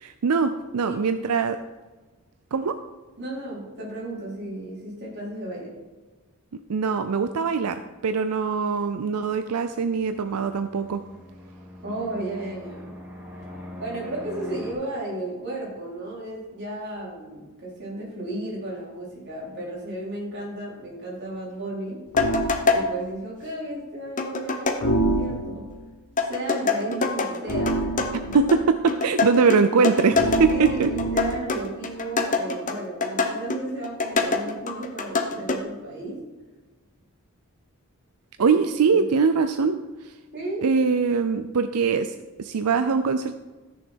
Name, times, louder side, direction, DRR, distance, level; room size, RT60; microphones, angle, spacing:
voice 1, 0.0-1.6 2.5-2.8 6.7-11.0 28.3-30.9 38.4-39.8 40.0-40.1 40.6-42.1 42.4-43.4, right 5 dB, 90° right, 9 dB, 0.5 m, -22 dB
voice 2, 3.2-5.7 11.8-12.9 13.8-22.0 22.7-25.7 26.2-28.1 30.5-36.2 38.4-38.6 38.9-39.0 40.3-40.6, right 1 dB, 50° right, -5 dB, 4.0 m, -34 dB
Fixed-wing aircraft airplane, 9.8-14.7, left 1 dB, 10° right, 1.9 m, -42 dB
sound 1, 22.1-22.6 24.8-25.7 27.5-28.6 30.1-31.5, right 2 dB, 65° left, 1.2 m, -26 dB
sound 2, 22.2-22.9 24.2-24.8 26.2-35.6, left 4 dB, 35° left, 0.9 m, -25 dB
14.0 x 6.7 x 4.5 m, 1.2 s
head